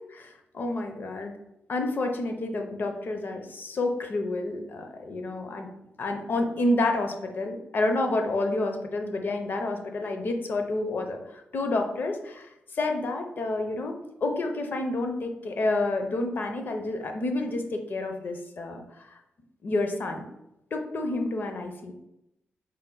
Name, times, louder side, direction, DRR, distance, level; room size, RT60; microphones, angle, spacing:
voice 1, 0.1-1.3 1.7-5.7 6.0-11.2 11.5-13.9 14.2-18.8 19.6-20.3 20.7-21.9, left 2 dB, 50° left, 4 dB, 0.5 m, -29 dB
4.3 x 2.1 x 3.8 m, 0.86 s
cardioid pair, 105°, 4 cm